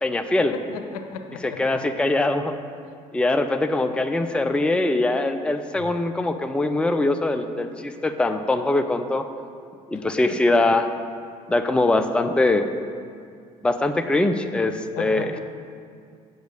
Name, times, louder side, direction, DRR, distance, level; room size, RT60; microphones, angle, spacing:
voice 1, 0.0-0.5 1.4-2.5 3.1-9.3 9.9-10.9 11.5-12.7 13.6-15.4, left 2 dB, 5° left, 8 dB, 0.5 m, -22 dB
voice 2, 0.5-1.6 9.9-10.0 14.9-15.4, left 6 dB, 70° left, 6 dB, 0.7 m, -35 dB
8.0 x 6.9 x 6.5 m, 2.2 s
figure-of-eight pair, 55°, 20 cm